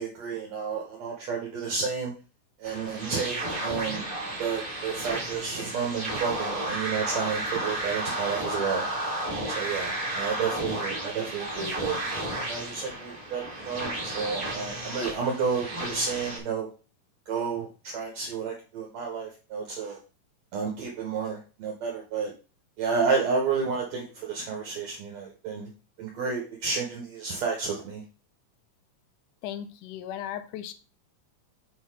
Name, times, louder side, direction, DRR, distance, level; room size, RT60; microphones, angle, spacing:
voice 1, 0.0-2.1 2.6-4.0 4.4-8.9 9.5-12.0 12.5-16.7 17.3-20.0 20.5-22.3 22.8-25.7 26.0-28.0, right 5 dB, 65° right, 2.0 m, -31 dB
sound 1, 2.6-16.4, right 1 dB, 35° right, 1.6 m, -33 dB
voice 2, 29.4-30.7, left 10 dB, 80° left, 2.1 m, -36 dB
6.4 x 3.9 x 4.7 m
omnidirectional pair, 3.8 m